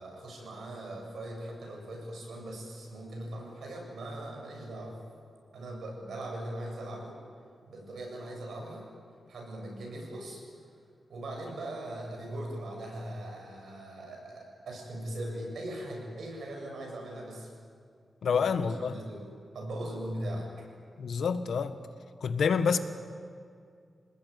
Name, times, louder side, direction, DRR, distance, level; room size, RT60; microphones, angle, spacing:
voice 1, 0.0-5.0 5.5-7.2 7.7-8.9 9.3-10.4 11.1-17.5 18.3-19.3 19.5-20.5, right 1 dB, 90° right, 0 dB, 7.9 m, -40 dB
voice 2, 18.2-19.0 21.0-21.7 22.2-22.8, left 6 dB, 85° left, 10 dB, 1.5 m, -27 dB
28.0 x 19.5 x 9.6 m, 2.3 s
wide cardioid pair, 110°, 0 cm